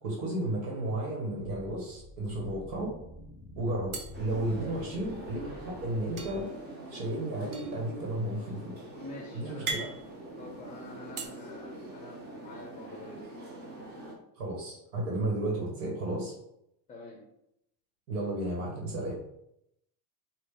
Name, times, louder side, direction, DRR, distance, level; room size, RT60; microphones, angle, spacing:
voice 1, 0.0-2.9 3.6-6.5 6.9-8.8 9.3-9.8 14.4-16.3 18.1-19.1, right 1 dB, 65° right, -2 dB, 1.7 m, -33 dB
sound 1, 0.6-1.5 1.8-2.0 2.3-3.0 3.9-5.2 6.2-11.3, right 3 dB, 40° right, 0.8 m, -42 dB
sound 2, 1.3-6.4, left 1 dB, ahead, 1.3 m, -48 dB
sound 3, 4.1-14.1, right 1 dB, 20° right, 1.2 m, -45 dB
voice 2, 9.0-10.0 10.4-13.3 16.9-17.2, left 2 dB, 15° left, 0 dB, 0.7 m, -46 dB
5.0 x 2.6 x 3.8 m, 0.79 s
supercardioid pair, 135°, 50 cm